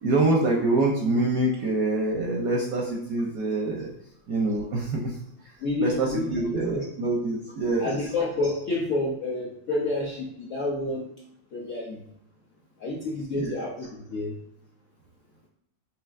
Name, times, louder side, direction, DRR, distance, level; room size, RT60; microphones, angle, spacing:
voice 1, 0.0-3.9 4.3-5.2 5.8-8.0 13.3-13.5, right 2 dB, 70° right, -1 dB, 0.8 m, -25 dB
voice 2, 5.6-6.9 7.8-11.1 11.5-12.0 12.8-14.3, left 2 dB, 60° left, -4 dB, 0.8 m, -29 dB
6.4 x 2.8 x 2.4 m, 0.74 s
omnidirectional pair, 2.1 m